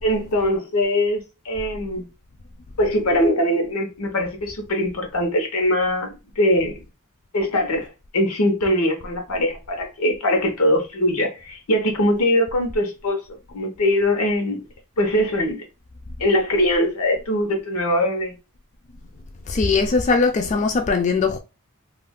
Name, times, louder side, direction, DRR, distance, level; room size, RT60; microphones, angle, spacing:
voice 1, 0.0-2.1 2.8-6.7 7.3-7.9 8.1-14.6 15.0-15.6 16.2-18.3, left 1 dB, 90° left, 0.9 m, -22 dB
voice 2, 19.5-21.4, left 4 dB, 35° left, 0.3 m, -20 dB
2.4 x 2.2 x 3.5 m
head